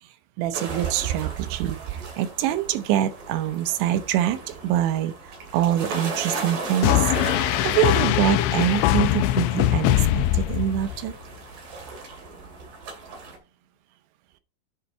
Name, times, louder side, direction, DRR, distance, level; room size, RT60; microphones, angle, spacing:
voice 1, 0.4-5.1 5.5-6.9 7.6-11.1, right 11 dB, 80° right, 3.1 m, -25 dB
sound 1, 0.5-13.4, right 3 dB, 50° right, 3.9 m, -36 dB
sound 2, 6.8-11.1, left 14 dB, 80° left, 2.7 m, -22 dB
10.5 x 5.1 x 4.4 m
omnidirectional pair, 5.3 m